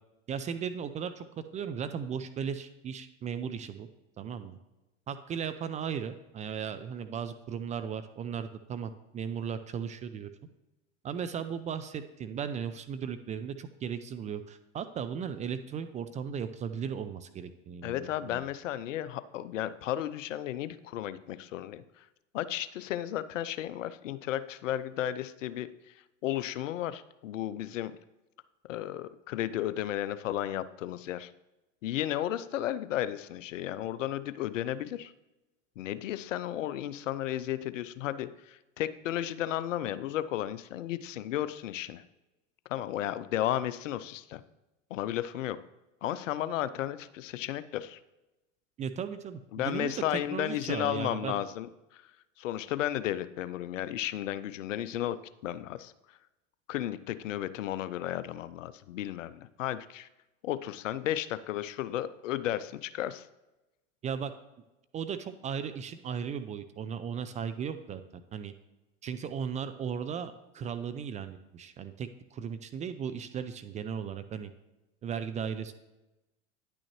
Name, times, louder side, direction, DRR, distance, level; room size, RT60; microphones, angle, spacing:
voice 1, 0.3-1.3 1.5-3.9 4.2-4.6 5.1-10.3 11.0-18.4 48.8-49.9 50.3-51.4 64.0-64.3 64.9-68.0 68.3-68.5 69.0-74.5 75.0-75.7, right 7 dB, 20° right, 10 dB, 0.3 m, -36 dB
voice 2, 17.8-21.8 22.3-25.9 26.2-27.9 28.7-31.3 31.8-35.1 35.8-42.0 42.7-44.4 44.9-45.6 46.0-48.0 49.5-52.0 52.4-55.9 56.7-60.1 60.4-63.3, left 12 dB, 80° left, 15 dB, 0.5 m, -34 dB
9.8 x 6.2 x 3.0 m, 1.0 s
hypercardioid pair, 85°, 37 cm